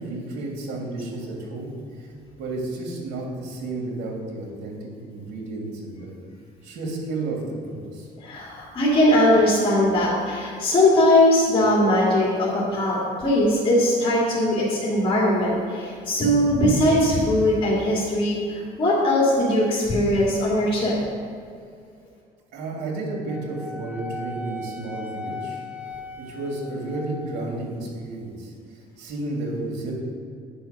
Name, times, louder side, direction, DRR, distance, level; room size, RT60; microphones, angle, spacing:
voice 1, 0.0-2.1 2.4-6.1 6.6-8.1 22.5-25.7 26.2-29.9, right 2 dB, 80° right, -1 dB, 2.7 m, -32 dB
voice 2, 8.2-20.9, left 1 dB, 30° left, -6 dB, 2.6 m, -20 dB
Wind instrument woodwind instrument, 23.3-27.4, left 2 dB, 10° right, 1.2 m, -37 dB
9.0 x 6.2 x 6.0 m, 2.3 s
cardioid pair, 110°, 17 cm